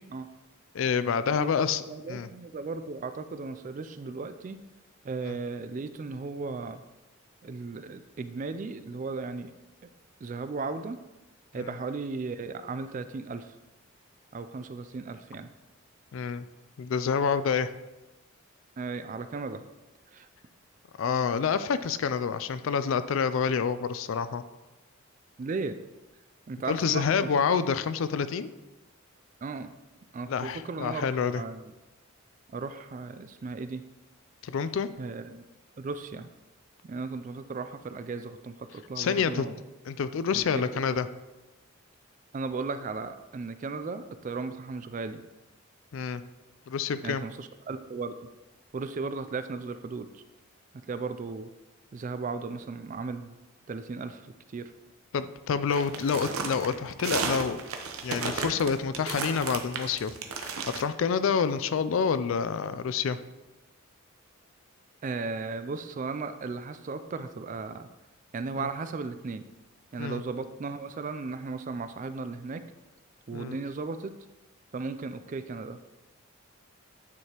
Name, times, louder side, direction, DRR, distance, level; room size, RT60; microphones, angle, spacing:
voice 1, 0.7-1.8 2.1-2.3 5.2-5.4 16.1-16.5 16.8-17.7 21.0-24.4 26.7-28.5 30.3-31.4 34.4-34.9 39.0-39.5 39.9-41.1 45.9-46.2 46.7-47.2 55.1-57.6 58.0-63.2 68.6-68.7 70.0-70.2 73.3-73.6, left 6 dB, 65° left, 13 dB, 0.3 m, -28 dB
voice 2, 1.9-4.6 5.0-6.8 7.4-9.5 10.2-11.0 11.5-13.6 14.3-15.5 18.8-19.6 20.1-20.3 25.4-25.7 26.5-27.3 29.4-29.7 30.1-31.7 32.5-33.8 35.0-35.5 35.8-36.3 36.8-39.6 40.3-40.6 42.3-45.2 47.0-48.1 48.7-50.2 50.9-51.5 51.9-53.4 53.7-54.7 65.0-67.9 68.3-69.5 69.9-72.6 73.3-74.1 74.7-75.8, right 4 dB, 35° right, 10 dB, 0.3 m, -36 dB
sound 1, 55.7-60.8, right 5 dB, 75° right, 0.7 m, -34 dB
9.5 x 4.7 x 2.9 m, 1.1 s
head